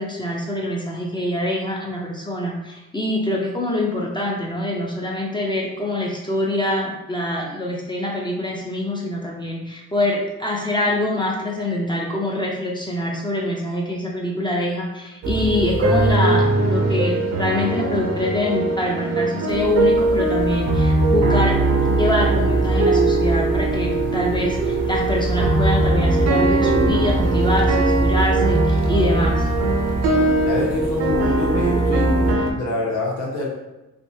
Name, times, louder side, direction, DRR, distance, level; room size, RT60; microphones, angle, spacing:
voice 1, 0.0-21.6 21.8-29.5, left 1 dB, 15° left, -2 dB, 0.5 m, -25 dB
sound 1, 15.2-32.5, right 2 dB, 55° right, 0.6 m, -19 dB
voice 2, 30.4-32.1 32.5-33.5, left 1 dB, 80° left, -3 dB, 1.1 m, -26 dB
3.4 x 2.6 x 2.7 m, 1.0 s
cardioid pair, 90°, 30 cm